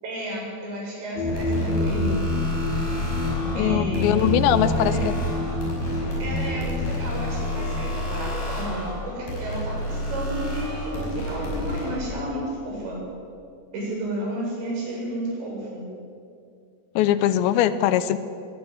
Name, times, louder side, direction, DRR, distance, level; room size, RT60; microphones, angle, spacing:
voice 1, 0.0-2.2 3.6-5.1 6.2-13.0 13.7-15.9, right 1 dB, 85° right, -3 dB, 9.6 m, -31 dB
sound 1, 1.2-8.3, left 2 dB, 40° left, 6.3 m, -28 dB
sound 2, 1.3-12.0, left 1 dB, 55° left, 7.6 m, -30 dB
voice 2, 3.5-5.1 17.0-18.2, left 11 dB, 85° left, 13 dB, 3.1 m, -21 dB
22.5 x 20.0 x 8.1 m, 2.4 s
omnidirectional pair, 5.0 m